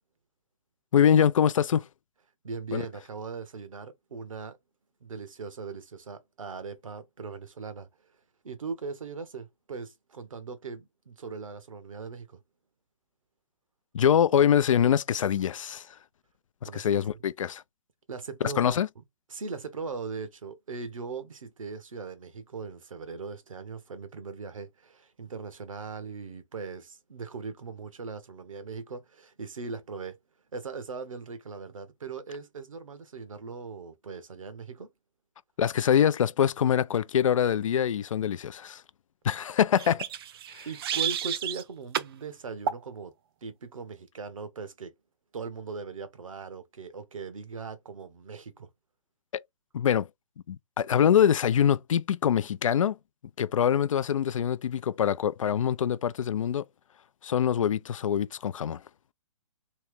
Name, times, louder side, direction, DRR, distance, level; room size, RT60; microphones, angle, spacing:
voice 1, 0.9-1.9 2.7-2.8 13.9-15.8 16.6-17.6 18.4-18.9 35.6-38.8 39.2-40.0 49.3-49.4 49.7-50.1 50.5-53.0 53.4-56.6 57.2-58.8, left 9 dB, 75° left, 0.4 m, -24 dB
voice 2, 2.4-4.6 5.0-7.9 8.4-12.4 16.6-17.1 18.1-19.0 19.3-30.2 30.5-34.9 40.7-43.1 43.4-44.9 45.3-48.7, right 4 dB, 80° right, 0.9 m, -39 dB
sound 1, 39.8-41.6 41.9-42.1 42.7-42.9, right 9 dB, 45° right, 0.4 m, -31 dB
3.1 x 2.9 x 3.4 m
hypercardioid pair, 135°, 17 cm